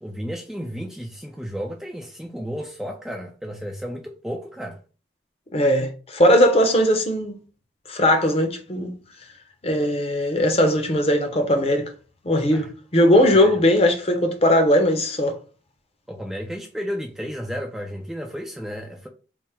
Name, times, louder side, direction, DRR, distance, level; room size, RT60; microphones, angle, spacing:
voice 1, 0.0-4.8 12.5-12.7 13.3-13.5 16.1-19.1, equal, 5° right, 0.3 m, -33 dB
voice 2, 5.5-7.3 7.9-8.9 9.6-11.9 12.2-15.4, left 1 dB, 30° left, 0.6 m, -19 dB
3.5 x 2.0 x 4.3 m
head